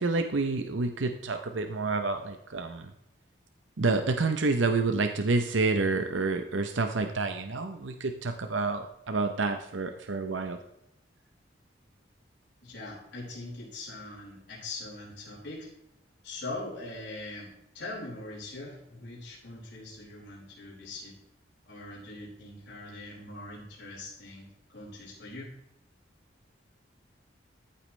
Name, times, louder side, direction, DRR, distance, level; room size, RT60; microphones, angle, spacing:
voice 1, 0.0-2.9 3.8-10.6, right 3 dB, 80° right, 6 dB, 0.8 m, -28 dB
voice 2, 12.6-15.7 16.2-21.1 21.7-25.5, left 2 dB, 65° left, -6 dB, 4.8 m, -42 dB
14.0 x 8.6 x 3.3 m, 0.84 s
head